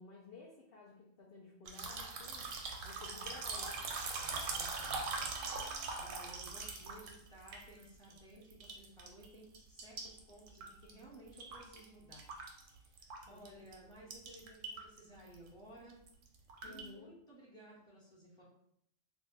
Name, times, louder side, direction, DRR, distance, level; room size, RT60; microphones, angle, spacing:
voice 1, 0.0-2.5 2.8-3.8 13.2-13.5 16.6-17.1, left 4 dB, 60° left, -3 dB, 0.7 m, -54 dB
sound 1, 1.6-8.2 8.5-9.3 9.5-11.8 12.1-13.5 13.7-13.8 14.1-15.0 15.3-15.5 15.9-16.9, right 4 dB, 90° right, 1.0 m, -41 dB
voice 2, 4.2-12.3 12.6-16.0 16.6-18.4, right 1 dB, 5° left, -7 dB, 1.0 m, -57 dB
2.5 x 2.3 x 3.8 m, 0.72 s
omnidirectional pair, 1.3 m